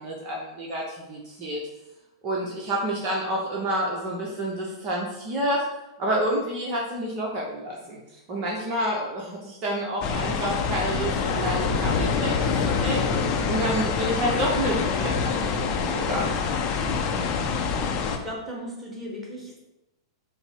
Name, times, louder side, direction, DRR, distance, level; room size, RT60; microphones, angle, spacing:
voice 1, 0.0-1.6 2.2-5.6 6.0-13.0 13.4-16.4, right 1 dB, 40° right, -2 dB, 0.8 m, -29 dB
sound 1, 10.0-18.2, left 5 dB, 35° left, 0.5 m, -26 dB
voice 2, 18.0-19.6, equal, 5° right, -5 dB, 1.5 m, -37 dB
5.3 x 2.0 x 4.5 m, 0.95 s
figure-of-eight pair, 100°, 2 cm